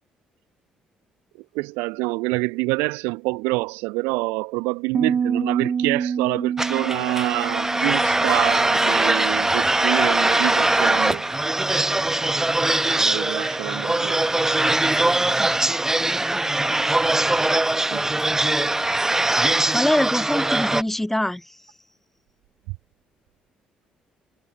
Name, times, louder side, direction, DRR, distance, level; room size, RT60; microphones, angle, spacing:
voice 1, 1.5-11.2 12.9-14.2 17.9-18.0, right 28 dB, 65° right, 1.2 m, -26 dB
Piano, 4.9-10.5, right 7 dB, 40° right, 2.9 m, -28 dB
sound 1, 6.6-20.8, right 2 dB, 10° right, 0.8 m, -21 dB
voice 2, 16.0-16.9 19.7-21.6, left 1 dB, 5° left, 1.4 m, -25 dB
figure-of-eight pair, 45°, 4 cm